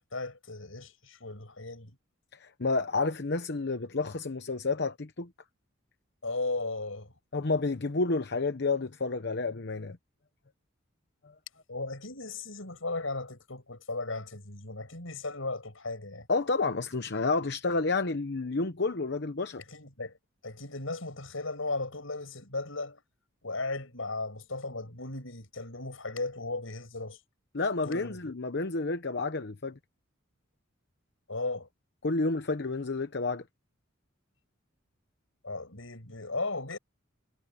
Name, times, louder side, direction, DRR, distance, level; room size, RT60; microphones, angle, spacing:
voice 1, 0.1-2.0 6.2-7.1 11.7-16.3 19.7-20.2 20.4-23.0 23.4-27.2 27.8-28.2 31.3-31.7 35.4-36.8, left 3 dB, 75° left, 6.4 m, -36 dB
voice 2, 2.4-5.3 7.3-10.0 16.3-19.6 27.5-29.8 32.0-33.4, left 3 dB, 55° left, 0.9 m, -30 dB
head